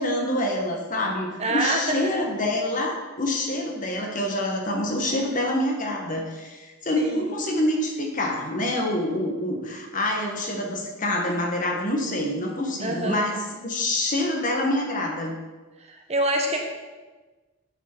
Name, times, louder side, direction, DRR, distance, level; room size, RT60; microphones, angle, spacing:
voice 1, 0.0-15.3, left 1 dB, 40° left, 1 dB, 1.3 m, -26 dB
voice 2, 1.4-2.1 6.9-7.3 12.8-13.2 15.8-16.6, right 1 dB, 30° right, 2 dB, 1.0 m, -26 dB
8.3 x 6.2 x 4.5 m, 1.2 s
head